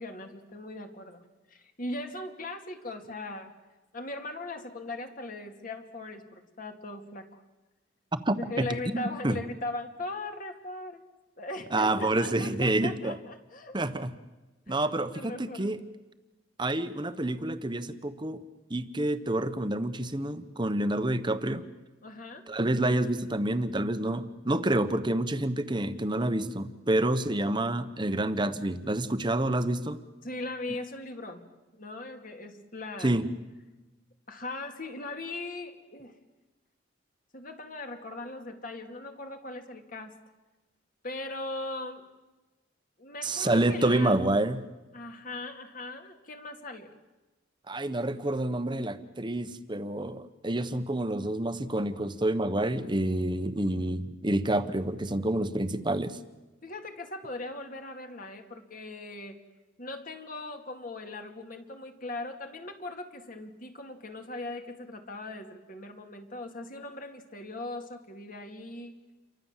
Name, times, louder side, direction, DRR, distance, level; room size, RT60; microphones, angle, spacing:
voice 1, 0.0-3.5 3.9-7.4 8.4-11.0 11.4-13.8 14.7-15.7 22.0-22.5 30.2-33.2 34.3-36.2 37.3-40.2 41.0-42.0 43.0-44.2 44.9-46.9 56.6-59.4 59.8-69.0, left 2 dB, 45° left, 5 dB, 2.5 m, -39 dB
voice 2, 8.1-8.7 8.9-9.4 11.7-13.2 13.7-14.1 14.7-15.8 16.6-18.4 18.7-21.6 22.5-30.0 33.0-33.3 43.2-44.6 47.7-56.2, right 1 dB, 25° right, 11 dB, 1.1 m, -28 dB
29.5 x 24.0 x 7.5 m, 1.1 s
head